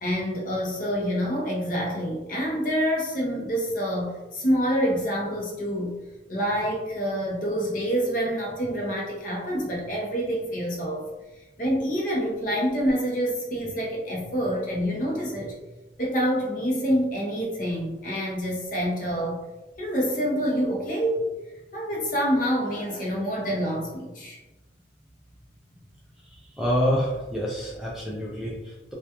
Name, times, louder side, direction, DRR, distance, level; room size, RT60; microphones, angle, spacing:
voice 1, 0.0-6.0 6.3-11.1 11.6-15.6 16.0-19.4 19.8-21.2 21.7-24.4, equal, 45° left, -2 dB, 0.7 m, -27 dB
voice 2, 26.3-28.9, equal, 5° right, -5 dB, 0.3 m, -27 dB
2.3 x 2.2 x 2.8 m, 1.1 s
head